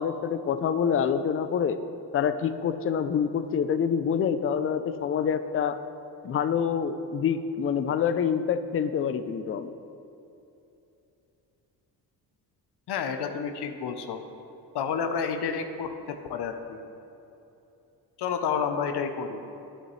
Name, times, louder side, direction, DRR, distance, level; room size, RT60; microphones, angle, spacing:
voice 1, 0.0-1.8 2.1-5.8 6.2-9.7, left 7 dB, 35° left, 11 dB, 0.4 m, -26 dB
voice 2, 12.9-14.2 14.7-16.8 18.2-19.4, left 6 dB, 70° left, 6 dB, 0.7 m, -30 dB
9.9 x 7.8 x 3.2 m, 2.9 s
cardioid pair, 90°, 41 cm